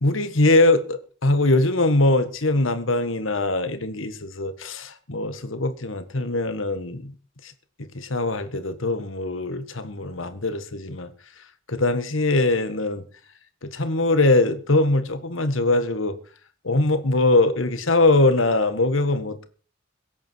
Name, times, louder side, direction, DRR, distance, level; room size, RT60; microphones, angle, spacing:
voice 1, 0.0-7.1 7.4-7.5 7.8-11.1 11.7-13.0 13.6-16.2 16.6-19.5, left 2 dB, 90° left, 1.8 m, -22 dB
23.0 x 8.7 x 4.7 m
head